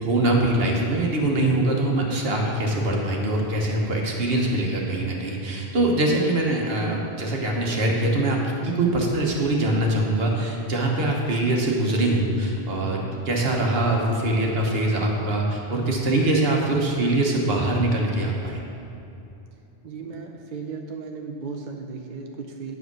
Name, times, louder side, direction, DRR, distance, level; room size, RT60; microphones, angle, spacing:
voice 1, 0.0-18.6, right 1 dB, 70° right, -1 dB, 1.4 m, -23 dB
voice 2, 19.8-22.8, right 4 dB, 55° right, 2 dB, 0.7 m, -35 dB
9.3 x 4.9 x 6.1 m, 2.8 s
omnidirectional pair, 1.1 m